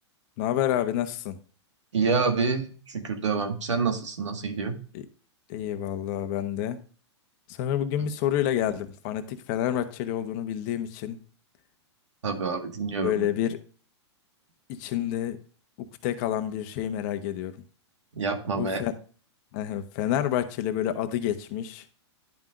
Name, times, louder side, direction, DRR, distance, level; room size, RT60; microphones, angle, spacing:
voice 1, 0.4-1.4 4.9-5.0 5.5-6.8 7.5-11.2 13.0-13.6 14.7-15.4 15.8-17.6 18.6-18.9 19.5-21.8, left 11 dB, 40° left, 1.0 m, -28 dB
voice 2, 1.9-4.8 12.2-13.3 18.2-18.8, right 4 dB, 90° right, 1.8 m, -27 dB
10.5 x 5.7 x 2.5 m
hypercardioid pair, 130°, 15 cm